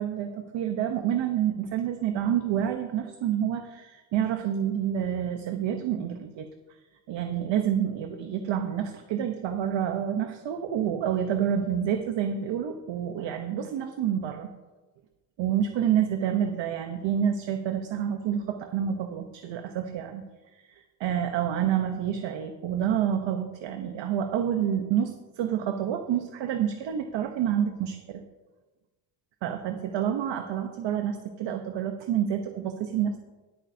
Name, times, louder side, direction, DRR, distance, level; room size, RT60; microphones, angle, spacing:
voice 1, 0.0-6.5 7.1-14.5 15.4-20.2 20.5-28.2 29.4-33.2, right 9 dB, 75° right, 6 dB, 1.0 m, -28 dB
21.0 x 8.5 x 2.8 m, 1.2 s
cardioid pair, 100°, 44 cm